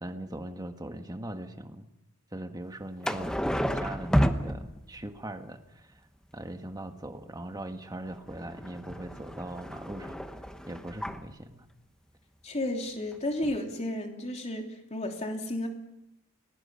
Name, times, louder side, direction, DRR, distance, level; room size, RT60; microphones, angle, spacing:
voice 1, 0.0-1.9 2.3-5.9 6.3-10.2 10.6-11.6, right 1 dB, 20° right, 6 dB, 1.6 m, -40 dB
sound 1, 3.0-5.2 8.1-11.3 13.1-13.2 13.4-13.6, equal, 5° left, 1.0 m, -31 dB
voice 2, 12.4-15.7, left 1 dB, 30° left, 2 dB, 3.2 m, -32 dB
30.0 x 20.0 x 5.7 m, 0.89 s
head